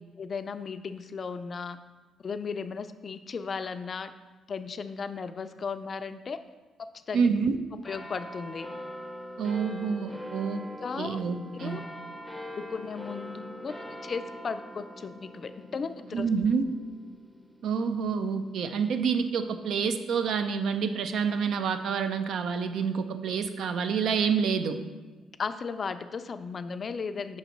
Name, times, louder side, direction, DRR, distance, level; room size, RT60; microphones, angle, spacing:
voice 1, 0.2-1.8 2.2-4.1 4.5-6.4 6.8-7.3 7.8-8.7 10.8-11.2 11.5-11.8 12.6-13.8 14.0-16.2 25.4-27.4, left 5 dB, 45° left, 11 dB, 0.3 m, -35 dB
voice 2, 7.1-7.6 9.4-10.6 11.0-11.8 16.1-16.7 17.6-24.8, right 6 dB, 70° right, 9 dB, 0.4 m, -28 dB
sound 1, 7.8-20.7 21.4-21.5, left 1 dB, ahead, 0.6 m, -43 dB
5.1 x 4.0 x 5.8 m, 1.2 s
cardioid pair, 90°, 0 cm